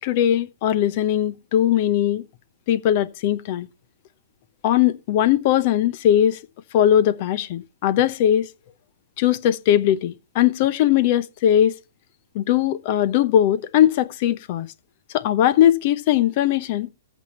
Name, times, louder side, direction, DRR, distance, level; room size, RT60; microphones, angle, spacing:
voice 1, 0.0-2.2 2.7-3.7 4.6-6.4 6.7-8.5 9.2-11.7 12.3-14.7 15.1-16.9, left 11 dB, 45° left, 0.8 m, -19 dB
14.5 x 7.3 x 3.1 m
figure-of-eight pair, 115°, 0 cm